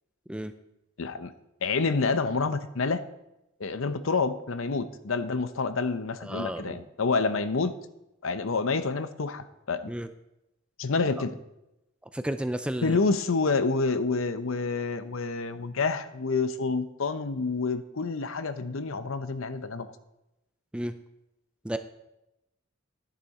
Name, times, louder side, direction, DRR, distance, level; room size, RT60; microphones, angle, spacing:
voice 1, 1.0-1.3 1.6-3.0 3.6-7.8 8.2-9.9 10.8-11.4 12.8-19.9, left 4 dB, 70° left, 12 dB, 0.7 m, -28 dB
voice 2, 6.2-6.9 9.9-10.1 12.1-13.0 20.7-20.9 21.6-21.8, right 1 dB, 5° right, 10 dB, 0.4 m, -32 dB
12.0 x 10.0 x 4.2 m, 0.90 s
head